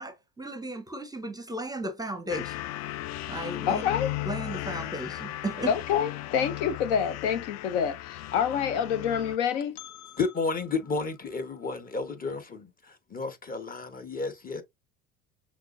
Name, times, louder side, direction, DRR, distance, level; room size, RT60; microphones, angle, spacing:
voice 1, 0.0-2.6 3.3-3.8 4.3-5.7, right 1 dB, 10° right, 0.8 m, -35 dB
sound 1, 2.3-9.4, left 16 dB, 50° left, 0.4 m, -36 dB
voice 2, 3.7-4.1 5.7-10.2, left 8 dB, 75° left, 0.8 m, -27 dB
voice 3, 10.2-14.6, left 4 dB, 25° left, 1.2 m, -32 dB
5.9 x 3.0 x 2.6 m
hypercardioid pair, 70°, 36 cm